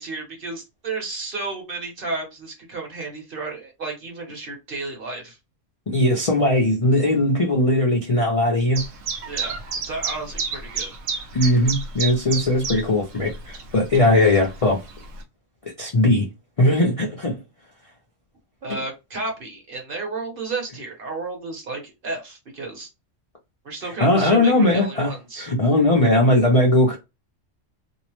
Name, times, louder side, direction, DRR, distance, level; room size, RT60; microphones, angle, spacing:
voice 1, 0.0-5.4 9.2-9.6 9.8-10.9 18.6-22.9 23.6-25.5, right 3 dB, 50° right, 1.0 m, -32 dB
voice 2, 5.9-8.8 11.3-14.8 15.8-16.3 16.6-17.4 24.0-25.1 25.4-27.0, left 1 dB, 45° left, 0.4 m, -19 dB
Chirp tweet, 8.7-15.2, right 5 dB, 80° right, 1.0 m, -31 dB
2.6 x 2.0 x 2.9 m
omnidirectional pair, 1.3 m